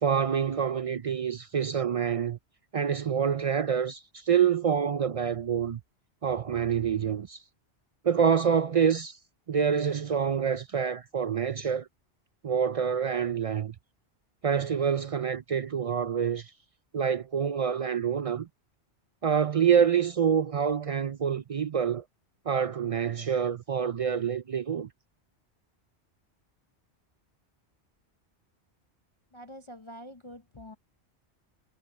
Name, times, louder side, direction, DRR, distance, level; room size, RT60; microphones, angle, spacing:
voice 1, 0.0-2.4 2.7-5.8 6.2-7.4 8.0-9.2 9.5-11.9 12.4-13.7 14.4-16.5 16.9-18.5 19.2-22.0 22.5-24.9, right 7 dB, 65° right, 0.3 m, -26 dB
voice 2, 29.3-30.8, equal, 30° left, 0.7 m, -46 dB
omnidirectional pair, 1.2 m